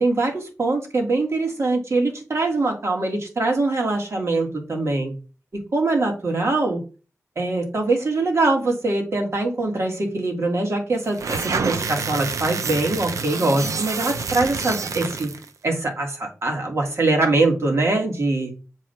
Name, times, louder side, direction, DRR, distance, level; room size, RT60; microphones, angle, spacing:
voice 1, 0.0-5.1 5.7-6.8 7.4-15.3 15.6-18.5, right 2 dB, 60° right, 1 dB, 1.8 m, -23 dB
sound 1, 11.1-15.5, right 5 dB, 85° right, 0.5 m, -28 dB
7.3 x 2.5 x 5.6 m, 0.34 s
wide cardioid pair, 80°, 5 cm